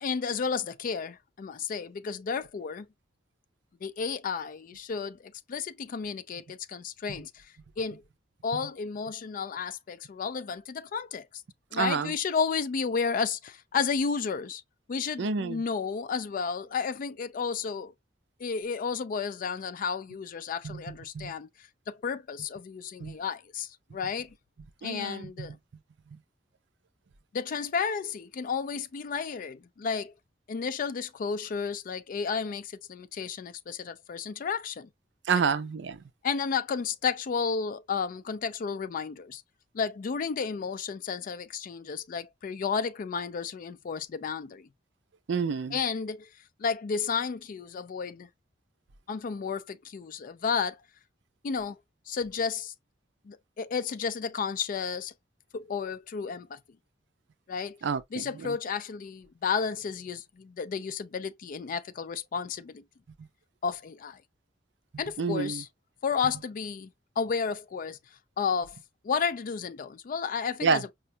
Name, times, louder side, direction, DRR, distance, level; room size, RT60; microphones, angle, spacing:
voice 1, 0.0-2.9 3.8-7.3 7.8-8.0 8.4-11.3 11.7-14.6 14.9-17.9 18.4-21.5 21.9-24.3 24.8-25.6 27.3-30.1 30.5-34.9 36.2-39.4 39.7-44.7 45.7-46.3 46.6-48.3 49.1-50.8 51.4-51.8 52.1-52.7 53.3-55.1 55.5-56.6 57.5-57.8 58.1-62.8 63.6-64.2 65.0-65.7 66.0-66.9 67.2-68.0 68.4-68.7 69.0-70.9, left 6 dB, 50° left, 0.4 m, -32 dB
voice 2, 11.7-12.1 15.2-15.6 20.6-21.3 23.0-23.2 24.8-25.5 35.3-36.0 45.3-45.8 57.8-58.6 65.2-65.6 70.6-70.8, right 5 dB, 70° right, 0.4 m, -29 dB
5.0 x 2.2 x 2.6 m
head